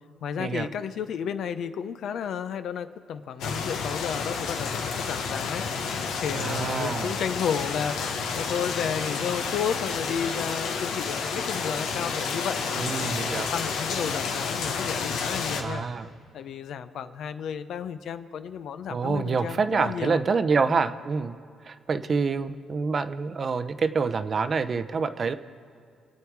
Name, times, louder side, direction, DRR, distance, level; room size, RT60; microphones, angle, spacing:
voice 1, 0.2-15.9 16.3-20.2 20.6-20.9 21.9-22.1, left 7 dB, 70° left, 11 dB, 0.7 m, -33 dB
sound 1, 3.4-15.6, left 5 dB, 90° left, 1.2 m, -30 dB
voice 2, 6.3-7.1 12.8-13.5 15.6-16.1 18.9-21.4 21.7-25.4, right 5 dB, 45° right, 12 dB, 0.7 m, -27 dB
25.0 x 8.5 x 4.7 m, 2.4 s
cardioid pair, 90°, 0 cm